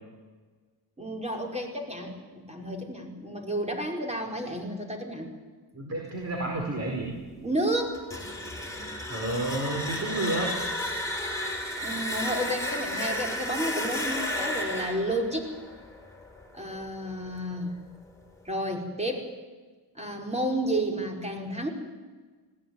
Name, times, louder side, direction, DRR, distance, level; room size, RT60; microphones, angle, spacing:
voice 1, 1.0-5.3 7.4-8.0 11.8-15.5 16.5-17.7 18.4-19.3 20.0-21.7, right 1 dB, 15° right, 1 dB, 5.0 m, -31 dB
voice 2, 5.7-7.2 9.1-10.6, right 2 dB, 35° right, 0 dB, 4.8 m, -30 dB
sound 1, 7.9-16.8, left 1 dB, 5° left, 5.2 m, -33 dB
20.5 x 17.0 x 9.5 m, 1.4 s
cardioid pair, 95°, 41 cm